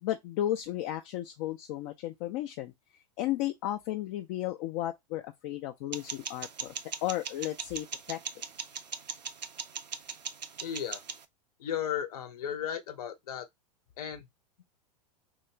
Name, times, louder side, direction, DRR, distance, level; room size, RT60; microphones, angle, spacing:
voice 1, 0.0-2.7 3.2-6.7 7.0-8.2, left 13 dB, 40° left, 0.4 m, -34 dB
sound 1, 5.9-11.2, right 6 dB, 85° right, 0.4 m, -40 dB
voice 2, 10.6-11.0 11.6-13.5 14.0-14.3, left 9 dB, 65° left, 0.7 m, -35 dB
2.9 x 2.3 x 3.2 m
figure-of-eight pair, 95°, 21 cm